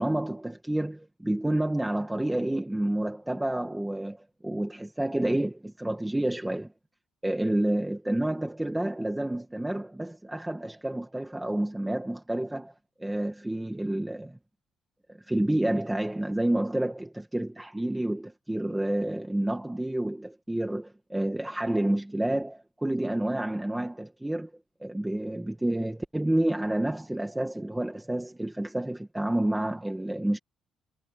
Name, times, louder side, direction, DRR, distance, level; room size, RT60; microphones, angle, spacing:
voice 1, 0.0-6.7 7.2-12.7 13.0-14.4 15.1-24.5 24.8-30.4, right 1 dB, 5° right, 1.5 m, -29 dB
cardioid pair, 170°, 0 cm